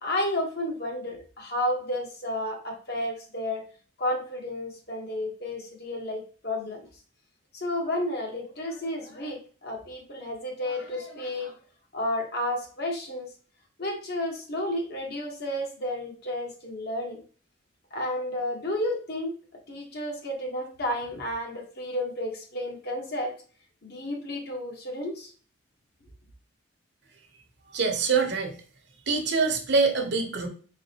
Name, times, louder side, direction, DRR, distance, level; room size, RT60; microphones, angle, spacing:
voice 1, 0.0-3.6 4.0-6.9 7.5-11.5 11.9-13.3 13.8-17.2 17.9-19.3 19.7-23.3 23.8-25.3, left 1 dB, 50° left, 1 dB, 1.1 m, -31 dB
voice 2, 27.7-28.6 29.1-30.5, right 4 dB, 55° right, 3 dB, 0.9 m, -24 dB
3.9 x 3.7 x 2.8 m, 0.41 s
head